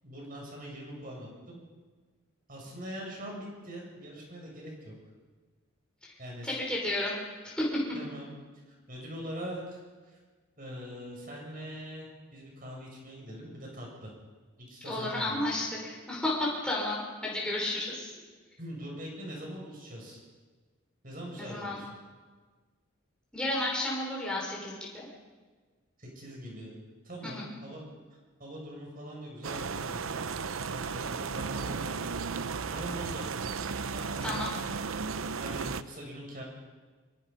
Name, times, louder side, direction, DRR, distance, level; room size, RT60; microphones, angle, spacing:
voice 1, 0.0-1.6 2.5-4.9 6.2-6.6 7.9-8.3 8.9-10.2 10.6-14.1 14.6-15.4 18.6-20.2 21.0-21.9 26.0-26.7 27.0-27.8 28.4-30.1 30.7-32.3 32.7-33.2 33.9-34.5 35.4-36.4, equal, 40° right, -1 dB, 7.4 m, -42 dB
voice 2, 6.4-7.2 7.4-7.7 14.8-18.1 21.4-21.8 23.3-25.1 27.2-27.5 34.2-34.5, left 1 dB, 5° left, -5 dB, 5.6 m, -32 dB
sound 1, 29.4-35.8, right 5 dB, 80° right, 0.7 m, -34 dB
24.0 x 23.0 x 5.6 m, 1.4 s
head